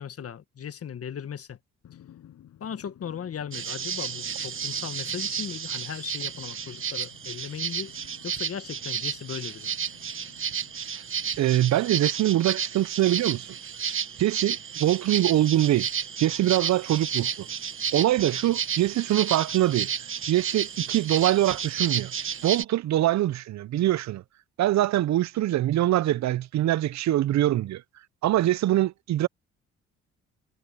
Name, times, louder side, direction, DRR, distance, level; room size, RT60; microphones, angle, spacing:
voice 1, 0.0-1.6 2.6-9.8, left 8 dB, 50° left, 1.7 m, -37 dB
Drum, 1.8-12.9, left 11 dB, 70° left, 7.0 m, -54 dB
sound 1, 3.5-22.6, right 7 dB, 40° right, 1.5 m, -32 dB
voice 2, 11.4-13.5 14.2-15.9 16.2-17.5 17.9-19.9 20.3-22.1 22.4-24.2 24.6-27.8 28.2-29.3, right 14 dB, 65° right, 0.7 m, -23 dB
supercardioid pair, 65°, 30 cm